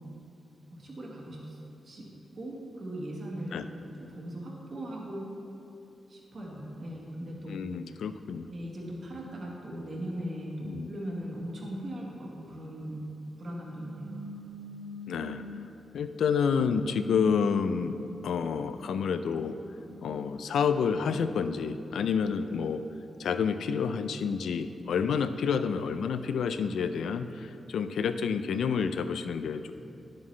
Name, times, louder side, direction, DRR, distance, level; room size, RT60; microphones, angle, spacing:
voice 1, 0.7-1.6 1.8-2.1 2.4-3.5 4.0-5.3 6.1-7.5 7.9-8.0 8.5-13.0 13.4-14.2, right 1 dB, 45° right, -3 dB, 1.4 m, -39 dB
voice 2, 7.5-8.5 10.6-10.9 15.1-15.7 15.9-18.0 18.2-19.6 20.0-22.8 23.2-29.7, left 6 dB, 85° left, 10 dB, 0.3 m, -29 dB
sound 1, 13.7-15.8 16.4-19.1 19.7-21.9, equal, 70° right, 2.0 m, -46 dB
10.0 x 7.3 x 3.2 m, 2.9 s
wide cardioid pair, 150°, 0 cm